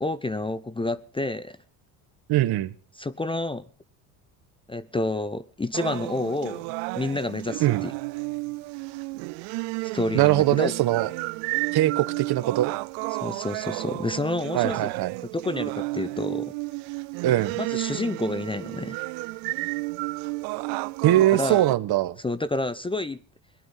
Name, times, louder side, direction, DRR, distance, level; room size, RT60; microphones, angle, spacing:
voice 1, 0.0-1.6 3.0-3.6 4.7-6.7 7.0-7.9 9.9-10.7 13.2-14.9 15.3-16.5 17.6-19.0 21.3-21.6 22.2-23.2, left 2 dB, 10° left, 17 dB, 0.6 m, -29 dB
voice 2, 2.3-2.7 7.6-7.8 10.1-11.1 11.7-12.7 14.5-15.1 17.2-17.6 21.0-22.2, right 14 dB, 55° right, 15 dB, 1.1 m, -21 dB
sound 1, 5.7-21.7, right 25 dB, 75° right, 0.6 m, -32 dB
18.5 x 11.0 x 5.6 m, 0.42 s
supercardioid pair, 85°, 46 cm